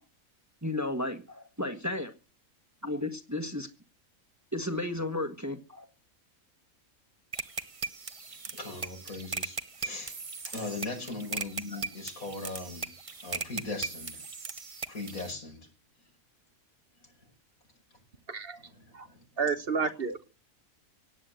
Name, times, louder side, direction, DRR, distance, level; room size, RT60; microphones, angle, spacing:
voice 1, 0.6-2.1 2.8-3.7 4.5-5.9, left 1 dB, 15° right, 1.3 m, -33 dB
sound 1, 7.3-15.3, right 4 dB, 30° right, 0.8 m, -38 dB
voice 2, 8.5-10.2 10.4-12.9 13.2-14.2 14.9-15.7 18.6-19.2 19.9-20.1, left 3 dB, 90° left, 6.1 m, -39 dB
voice 3, 19.4-20.2, right 5 dB, 50° right, 1.2 m, -30 dB
17.0 x 9.7 x 7.8 m
omnidirectional pair, 1.4 m